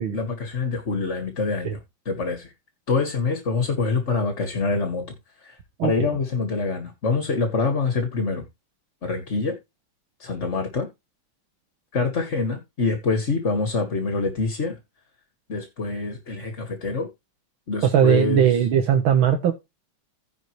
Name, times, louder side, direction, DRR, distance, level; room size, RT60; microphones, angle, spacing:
voice 1, 0.0-1.8 2.1-2.5 2.9-5.1 5.4-8.4 9.0-9.6 10.2-10.9 11.9-14.8 15.5-17.1 17.7-18.6, left 4 dB, 35° left, 1.9 m, -25 dB
voice 2, 5.8-6.1 17.8-19.5, right 9 dB, 75° right, 2.0 m, -19 dB
15.5 x 5.3 x 3.1 m
omnidirectional pair, 2.3 m